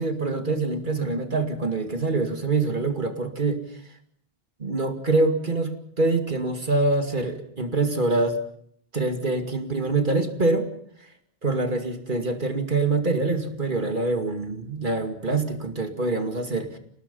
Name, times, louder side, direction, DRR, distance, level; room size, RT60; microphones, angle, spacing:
voice 1, 0.0-3.6 4.6-8.4 8.9-10.7 11.4-16.8, right 3 dB, 50° right, 6 dB, 2.6 m, -25 dB
29.5 x 19.0 x 5.5 m, 0.66 s
omnidirectional pair, 1.0 m